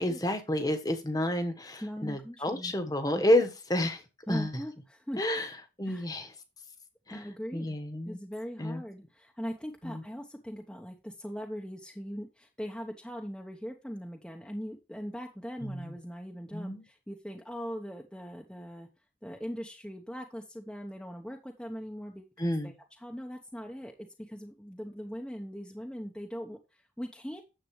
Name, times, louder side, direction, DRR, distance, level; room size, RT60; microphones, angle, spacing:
voice 1, 0.0-4.0 4.3-4.5 5.2-5.5 5.8-6.3 7.1-7.3 7.5-8.2 8.6-8.8 9.8-10.0 15.6-15.9 16.5-16.9 22.4-22.7, left 1 dB, 20° left, 1.3 m, -30 dB
voice 2, 1.8-2.7 3.1-3.4 4.3-5.3 5.8-6.0 7.1-7.8 8.1-18.9 19.2-27.4, equal, 5° left, 0.9 m, -40 dB
10.0 x 7.7 x 3.2 m
head